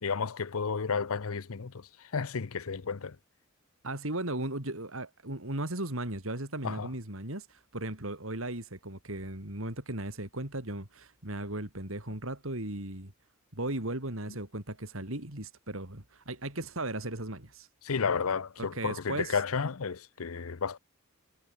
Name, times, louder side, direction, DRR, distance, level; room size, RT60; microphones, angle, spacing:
voice 1, 0.0-3.2 6.6-6.9 17.8-20.8, left 5 dB, 80° left, 0.7 m, -32 dB
voice 2, 3.8-13.1 13.5-17.7 18.6-19.4, right 1 dB, 65° right, 4.1 m, -36 dB
head